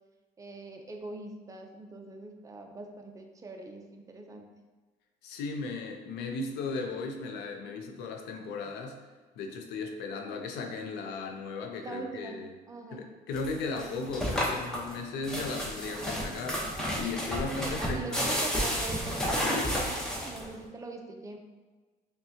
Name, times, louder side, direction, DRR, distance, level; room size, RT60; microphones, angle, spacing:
voice 1, 0.4-4.5 11.8-12.4 12.7-13.0 17.4-21.4, right 3 dB, 20° right, 3 dB, 0.5 m, -42 dB
voice 2, 5.2-8.9 9.4-12.5 12.9-16.7 16.9-18.5, left 4 dB, 85° left, 3 dB, 0.6 m, -36 dB
sound 1, 13.3-20.6, equal, 5° left, 0.9 m, -31 dB
5.5 x 2.3 x 2.8 m, 1.3 s
cardioid pair, 110°, 17 cm